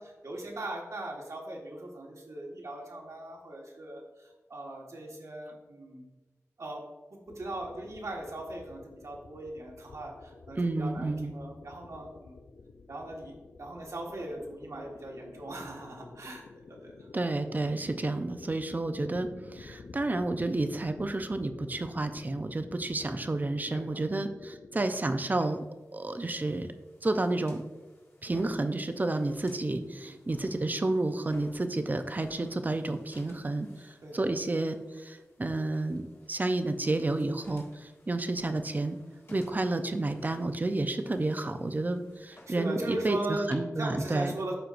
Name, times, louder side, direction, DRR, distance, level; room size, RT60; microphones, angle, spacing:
voice 1, 0.0-6.1 6.6-6.8 7.3-12.4 12.9-16.4 16.8-17.1 23.7-24.0 24.7-24.8 29.8-30.1 34.0-34.3 41.3-41.5 42.5-43.5 43.8-44.5, right 1 dB, 70° right, -1 dB, 1.6 m, -39 dB
sound 1, 7.3-24.9, left 3 dB, 75° left, 0.5 m, -51 dB
voice 2, 10.6-11.3 17.1-25.6 25.9-26.7 27.0-27.6 28.2-39.0 39.3-44.3, right 2 dB, 35° right, 8 dB, 0.6 m, -31 dB
sound 2, 25.4-43.6, left 1 dB, 50° left, 1.9 m, -57 dB
13.0 x 4.5 x 2.6 m, 1.2 s
wide cardioid pair, 95°, 5 cm